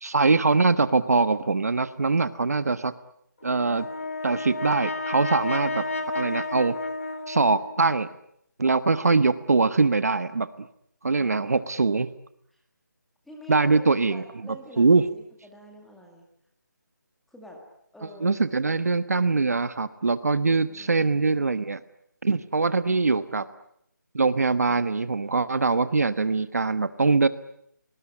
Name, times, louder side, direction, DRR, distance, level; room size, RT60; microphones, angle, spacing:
voice 1, 0.0-2.9 3.4-3.9 4.2-5.8 6.1-6.8 7.3-8.1 8.6-10.5 11.0-12.1 13.5-14.2 14.8-15.0 18.2-21.8 22.2-23.4 24.1-27.3, right 4 dB, 55° right, 14 dB, 1.2 m, -22 dB
Brass instrument, 3.4-7.9, left 3 dB, 45° left, 2.8 m, -32 dB
voice 2, 11.1-11.7 12.5-12.6 13.2-16.2 17.3-17.6 17.9-18.3 18.7-18.9 20.5-21.5 22.8-23.5, equal, ahead, 0 dB, 1.9 m, -48 dB
28.5 x 19.5 x 9.8 m, 0.73 s
figure-of-eight pair, 175°, 10 cm